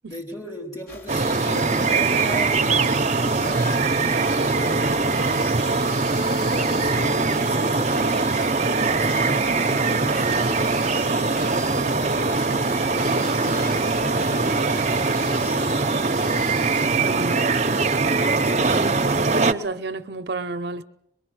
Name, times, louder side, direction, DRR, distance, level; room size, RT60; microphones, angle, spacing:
voice 1, 0.1-5.6 6.5-8.2 8.9-10.3 11.1-12.5 13.0-16.1 16.8-18.8, equal, 20° left, 4.2 m, -37 dB
sound 1, 0.9-16.8, left 1 dB, 55° left, 4.6 m, -39 dB
sound 2, 1.1-19.5, right 3 dB, 40° right, 0.9 m, -22 dB
voice 2, 16.9-17.4 18.8-18.9 19.2-20.8, right 3 dB, 65° right, 0.8 m, -31 dB
24.0 x 22.5 x 6.3 m
head